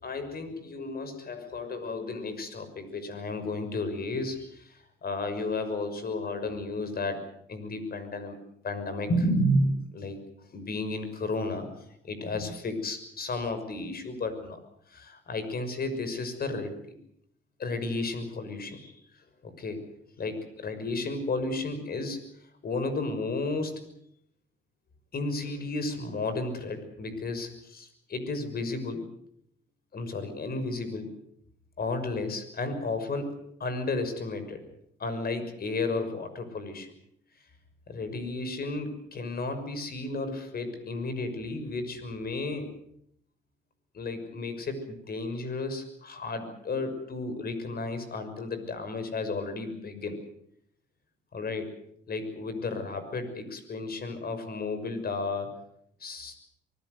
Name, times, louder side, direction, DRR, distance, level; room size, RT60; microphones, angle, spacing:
voice 1, 0.0-8.4 8.6-10.2 10.5-11.7 12.0-14.6 14.9-16.9 17.6-19.0 19.4-19.8 20.2-22.2 22.6-23.7 25.1-29.0 29.9-31.1 31.8-34.6 35.0-36.9 37.9-42.7 43.9-50.2 51.3-51.7 52.1-55.5 56.0-56.3, left 2 dB, 50° left, 10 dB, 6.2 m, -33 dB
25.0 x 19.5 x 8.1 m, 0.70 s
cardioid pair, 90°, 20 cm